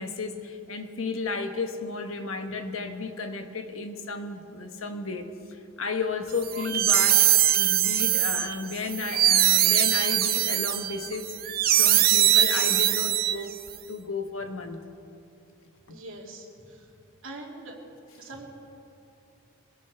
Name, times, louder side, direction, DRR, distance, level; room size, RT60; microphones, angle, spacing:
voice 1, 0.0-13.5 13.9-14.8 15.9-16.0, left 4 dB, 80° left, 6 dB, 1.2 m, -33 dB
sound 1, 6.4-13.7, right 12 dB, 45° right, 0.5 m, -22 dB
voice 2, 15.9-16.9 17.2-17.8 18.2-18.5, right 2 dB, 70° right, -1 dB, 2.4 m, -43 dB
22.5 x 17.0 x 3.5 m, 2.6 s
head